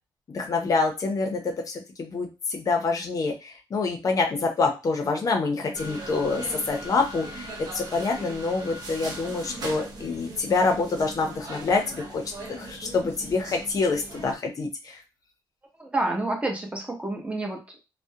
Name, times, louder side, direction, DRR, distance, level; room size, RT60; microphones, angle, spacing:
voice 1, 0.3-12.2 12.5-15.0, left 3 dB, 45° left, 3 dB, 0.5 m, -26 dB
sound 1, 5.7-14.4, right 1 dB, 55° right, 0.8 m, -39 dB
voice 2, 15.8-17.8, right 2 dB, 15° right, 1 dB, 0.8 m, -29 dB
2.3 x 2.0 x 2.7 m, 0.27 s
cardioid pair, 100°, 8 cm